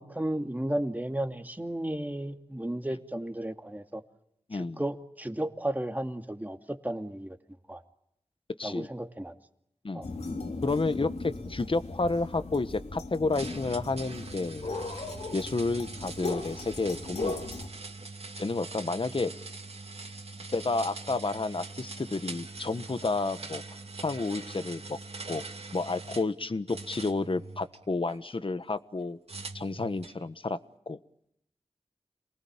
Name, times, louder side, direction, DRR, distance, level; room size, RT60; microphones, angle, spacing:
voice 1, 0.0-4.0 4.5-7.4 7.7-7.8 8.6-9.4 9.9-10.1, right 1 dB, 15° right, 6 dB, 2.4 m, -34 dB
voice 2, 4.5-4.8 8.6-8.9 9.8-10.1 10.6-14.7 15.3-17.3 18.4-19.3 20.5-23.6 24.0-25.0 25.3-25.4 25.7-29.2 29.5-30.6 30.9-31.0, left 3 dB, 55° left, 12 dB, 1.4 m, -30 dB
sound 1, 10.0-17.7, left 3 dB, 75° left, 3.0 m, -38 dB
sound 2, 13.3-26.3 26.7-28.2 29.3-30.2, right 3 dB, 70° right, 2.6 m, -43 dB
28.0 x 19.5 x 8.9 m, 0.79 s
cardioid pair, 40°, 11 cm